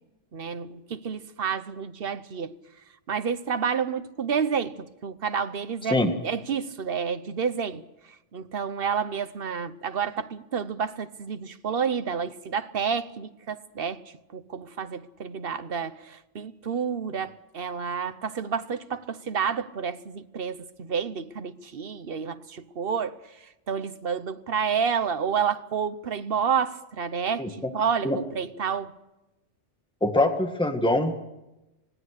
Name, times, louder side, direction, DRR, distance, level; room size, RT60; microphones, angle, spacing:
voice 1, 0.3-2.6 3.1-6.0 6.2-7.8 8.3-14.0 14.3-23.2 23.7-28.9, right 6 dB, 55° right, 1.1 m, -29 dB
voice 2, 30.0-31.1, left 1 dB, 5° left, 1.7 m, -23 dB
26.0 x 18.5 x 6.6 m
omnidirectional pair, 1.2 m